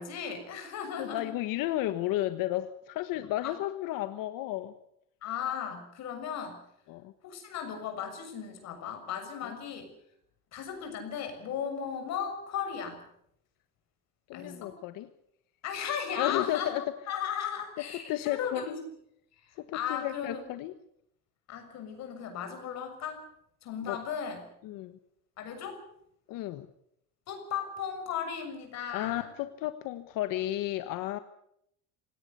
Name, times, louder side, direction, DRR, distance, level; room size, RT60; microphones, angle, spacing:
voice 1, 0.0-1.3 3.4-3.5 5.2-6.6 7.2-9.9 10.5-13.0 14.3-14.7 15.6-16.7 17.1-18.8 19.4-20.5 21.5-23.2 23.6-24.4 25.4-25.8 27.3-29.3, left 8 dB, 50° left, 5 dB, 6.9 m, -36 dB
voice 2, 1.0-4.7 6.9-7.1 9.4-9.6 14.3-15.1 16.2-16.8 18.1-18.8 19.6-20.7 23.9-24.0 24.6-25.0 26.3-26.7 28.9-31.2, left 14 dB, 80° left, 10 dB, 1.3 m, -33 dB
27.0 x 18.0 x 6.8 m, 0.73 s
cardioid pair, 175°, 33 cm